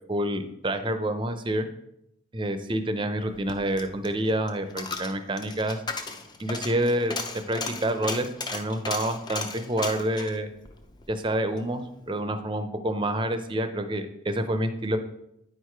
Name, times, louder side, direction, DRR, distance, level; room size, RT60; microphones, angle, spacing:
voice 1, 0.1-1.7 2.3-5.8 6.4-7.1 7.5-10.5 11.1-15.0, right 1 dB, 25° right, 8 dB, 0.6 m, -28 dB
Coin (dropping), 3.3-11.7 12.0-12.1, left 4 dB, 20° left, 0.6 m, -36 dB
9.5 x 4.7 x 4.6 m, 0.79 s
head